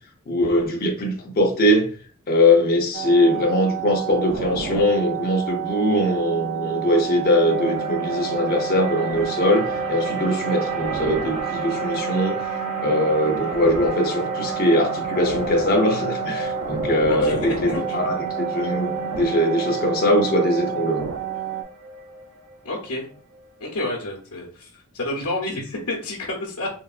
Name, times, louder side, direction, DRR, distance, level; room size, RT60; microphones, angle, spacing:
voice 1, 0.3-1.9 2.3-21.1, left 1 dB, 45° left, 1 dB, 0.5 m, -21 dB
sound 1, 2.9-21.6, right 10 dB, 55° right, 0.3 m, -30 dB
sound 2, 7.5-23.7, equal, 70° right, 0.8 m, -32 dB
voice 2, 17.1-18.0 22.6-23.1 23.6-26.7, left 2 dB, 75° left, -4 dB, 0.7 m, -29 dB
3.3 x 2.1 x 2.3 m, 0.41 s
head